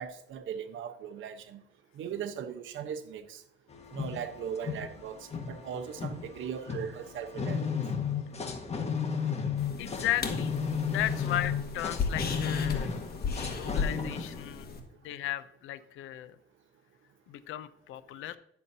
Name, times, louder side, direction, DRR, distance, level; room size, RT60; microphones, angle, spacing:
voice 1, 0.0-1.6 2.0-3.4 3.9-7.7, right 8 dB, 80° right, 0.9 m, -38 dB
sound 1, 3.7-14.4, left 6 dB, 30° left, 1.5 m, -34 dB
sound 2, 9.6-14.8, left 5 dB, 50° left, 1.5 m, -36 dB
voice 2, 9.8-10.5 10.9-13.1 13.5-14.7 15.0-16.4 17.3-18.4, left 13 dB, 90° left, 0.6 m, -35 dB
10.0 x 7.0 x 2.7 m
cardioid pair, 90°, 20 cm